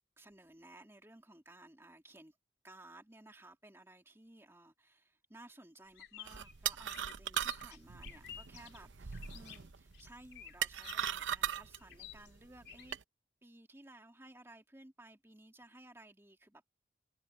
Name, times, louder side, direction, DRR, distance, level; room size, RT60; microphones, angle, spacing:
voice 1, 0.2-2.4 2.6-13.0 13.4-16.7, right 1 dB, 15° right, 2.4 m, -57 dB
sound 1, 5.9-12.9, left 10 dB, 60° left, 2.9 m, -54 dB
sound 2, 6.3-13.0, right 9 dB, 85° right, 0.8 m, -40 dB
head